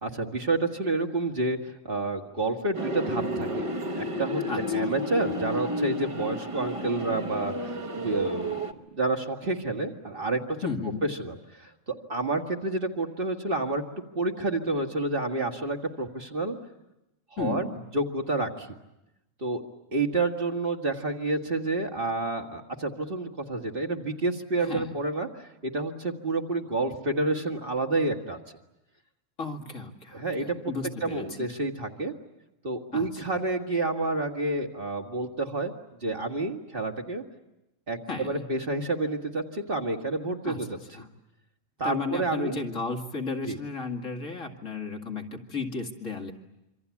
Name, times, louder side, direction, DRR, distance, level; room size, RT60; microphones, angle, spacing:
voice 1, 0.0-3.7 4.0-4.4 4.7-8.6 8.9-10.6 11.0-11.7 12.1-13.8 14.1-16.6 17.4-17.7 17.9-18.7 19.4-19.6 19.9-28.4 30.1-30.6 31.0-32.1 32.6-35.7 36.0-37.2 37.9-40.7 41.8-42.6 43.4-43.6, right 2 dB, 45° right, 3 dB, 2.0 m, -29 dB
sound 1, 2.7-8.7, equal, 25° right, 1.2 m, -31 dB
voice 2, 4.5-4.9 10.6-11.0 17.4-17.8 24.6-24.9 29.4-31.3 32.9-33.3 38.1-38.5 40.4-40.7 40.9-41.1 41.8-46.3, left 4 dB, 80° left, 3 dB, 2.6 m, -34 dB
26.5 x 25.0 x 8.4 m, 0.93 s
omnidirectional pair, 1.3 m